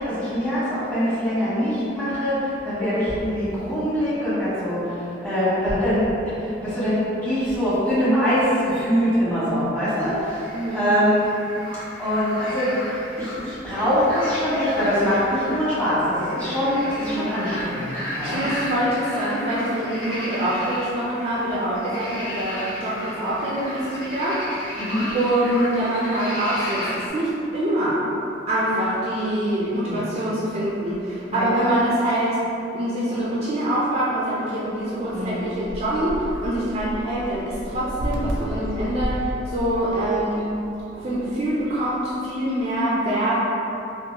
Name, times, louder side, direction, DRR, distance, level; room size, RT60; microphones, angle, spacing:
voice 1, 0.0-4.8 5.2-6.3 6.6-10.5 10.7-11.2 12.0-12.8 13.2-18.4 24.7-25.1 29.9-30.0 31.3-31.5 35.1-35.5, equal, 5° left, -12 dB, 1.3 m, -23 dB
sound 1, 10.0-27.1, equal, 45° left, 1.3 m, -34 dB
voice 2, 10.5-10.9 17.0-17.3 18.2-24.7 25.1-26.9 27.1-28.0 28.5-32.4 32.7-40.4 40.9-43.4, right 1 dB, 35° right, -7 dB, 0.4 m, -24 dB
sound 2, 35.0-41.8, equal, 85° right, 0.5 m, -33 dB
3.8 x 2.5 x 2.8 m, 2.9 s
head